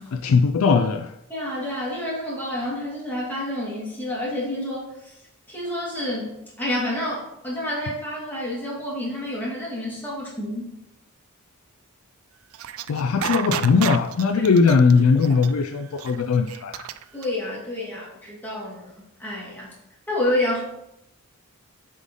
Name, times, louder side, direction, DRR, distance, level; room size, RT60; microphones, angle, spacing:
voice 1, 0.1-1.1 12.9-16.9, left 5 dB, 75° left, 5 dB, 0.4 m, -19 dB
voice 2, 1.3-5.2 5.5-10.7 14.4-14.5 15.1-15.3 17.1-18.9 19.2-19.7 20.1-20.6, left 1 dB, 10° left, -6 dB, 2.0 m, -29 dB
sound 1, 12.5-17.2, right 10 dB, 70° right, 0.3 m, -31 dB
7.3 x 3.8 x 3.7 m, 0.81 s
head